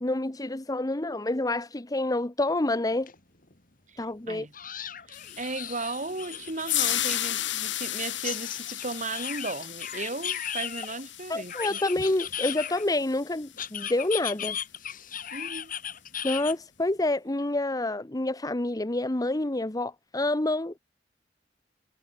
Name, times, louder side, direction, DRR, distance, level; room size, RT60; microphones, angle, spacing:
voice 1, 0.0-3.1 4.0-4.5 11.3-14.6 16.2-20.8, left 2 dB, 20° left, 0.9 m, -28 dB
sound 1, 3.1-3.2 3.5-3.6 4.5-7.1 8.2-11.0 11.5-13.0 13.6-16.5, left 9 dB, 50° left, 6.8 m, -36 dB
sound 2, 5.1-13.4, left 13 dB, 85° left, 7.0 m, -34 dB
voice 2, 5.1-11.8 15.3-15.7, right 3 dB, 45° right, 7.7 m, -35 dB
head